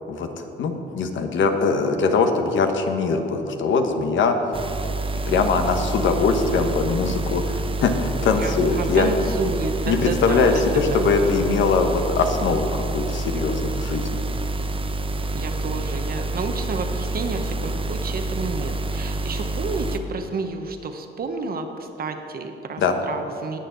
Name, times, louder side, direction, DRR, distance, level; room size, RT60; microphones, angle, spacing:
voice 1, 0.1-4.4 5.3-9.1 9.9-14.2 22.8-23.0, left 4 dB, 70° left, 6 dB, 1.1 m, -22 dB
sound 1, 4.5-20.0, right 2 dB, 25° right, 0.8 m, -27 dB
voice 2, 8.4-10.6 10.9-11.4 15.3-23.6, right 4 dB, 50° right, 6 dB, 1.0 m, -30 dB
18.5 x 6.6 x 4.0 m, 3.0 s
cardioid pair, 90°, 20 cm